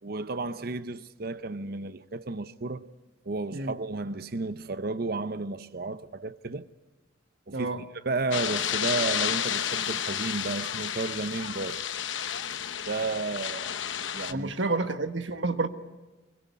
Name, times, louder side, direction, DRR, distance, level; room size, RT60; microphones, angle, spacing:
voice 1, 0.0-2.9 3.2-6.7 7.5-11.8 12.9-13.7 14.1-14.5, right 3 dB, 55° right, 0.8 m, -33 dB
sound 1, 8.3-14.3, left 9 dB, 85° left, 0.9 m, -31 dB
voice 2, 14.3-15.7, right 3 dB, 80° right, 1.4 m, -29 dB
23.0 x 23.0 x 8.4 m
head